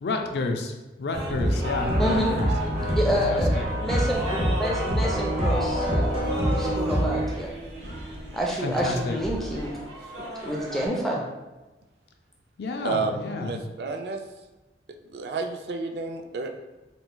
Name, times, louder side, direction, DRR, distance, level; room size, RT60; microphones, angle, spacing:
voice 1, 0.0-0.7 1.0-2.2 8.6-9.1 12.6-13.4, left 3 dB, 70° left, 4 dB, 0.4 m, -29 dB
sound 1, 1.1-7.2, equal, 35° right, 0.7 m, -26 dB
sound 2, 1.1-10.9, equal, 90° right, 0.9 m, -34 dB
voice 2, 2.0-2.4 2.9-6.1 6.6-7.5 8.3-9.7 10.4-11.2, equal, ahead, -2 dB, 0.4 m, -28 dB
voice 3, 12.8-14.2 15.1-16.6, right 4 dB, 70° right, 5 dB, 0.3 m, -31 dB
3.3 x 3.0 x 2.2 m, 1.1 s
head